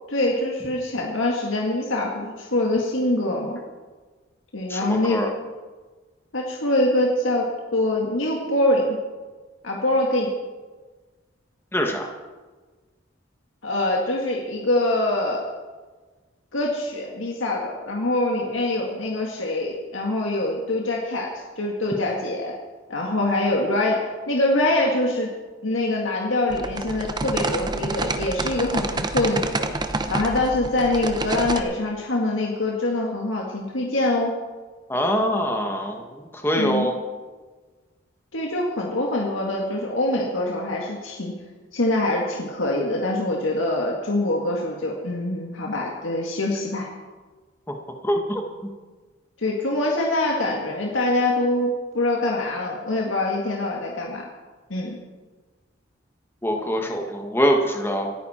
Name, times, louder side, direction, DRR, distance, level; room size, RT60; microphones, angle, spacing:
voice 1, 0.1-3.6 4.5-5.5 6.3-9.0 9.6-10.3 13.6-15.4 16.5-22.5 22.9-25.3 25.6-29.7 30.1-34.3 36.5-36.9 38.3-41.3 41.7-46.9 49.4-54.3 54.7-55.0, left 1 dB, 80° left, -1 dB, 1.9 m, -24 dB
voice 2, 4.7-5.3 11.7-12.1 34.9-37.0 48.0-48.4 56.4-58.1, equal, 10° left, 3 dB, 1.3 m, -24 dB
sound 1, 26.5-31.6, right 2 dB, 20° right, 0.8 m, -28 dB
26.5 x 9.7 x 4.3 m, 1.4 s
head